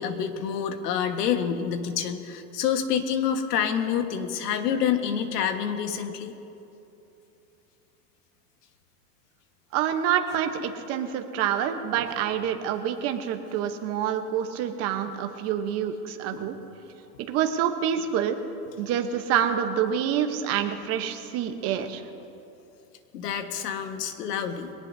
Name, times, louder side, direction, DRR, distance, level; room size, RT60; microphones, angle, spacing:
voice 1, 0.0-6.3 16.3-16.5 23.1-24.7, left 8 dB, 85° left, 7 dB, 1.6 m, -27 dB
voice 2, 9.7-16.6 17.3-18.4 18.8-22.1, right 9 dB, 30° right, 6 dB, 1.0 m, -27 dB
22.5 x 18.0 x 2.7 m, 2.8 s
supercardioid pair, 155°, 46 cm